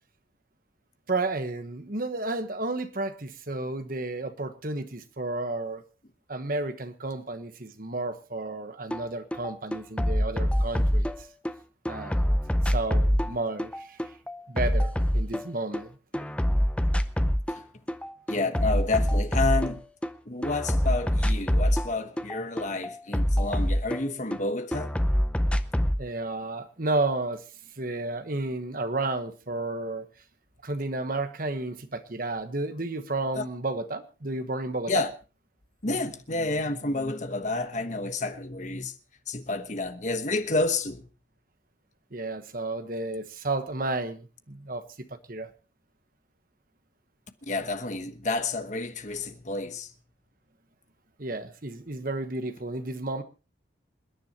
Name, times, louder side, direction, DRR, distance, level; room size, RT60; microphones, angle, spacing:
voice 1, 1.1-5.8 6.3-11.3 11.9-12.2 12.6-14.0 14.5-15.9 26.0-27.4 27.8-30.1 30.6-35.0 42.1-45.5 51.2-53.2, right 2 dB, 45° right, 1.2 m, -32 dB
sound 1, 8.9-9.0 9.3-11.5 11.9-15.8 16.1-17.6 17.9-20.1 20.4-24.4 24.7-26.0, equal, 5° left, 0.6 m, -25 dB
voice 2, 18.3-19.8 20.3-24.9 33.3-33.4 34.9-35.1 35.8-38.9 39.3-41.1 47.4-49.9, left 3 dB, 40° left, 1.2 m, -30 dB
27.5 x 10.5 x 2.9 m
head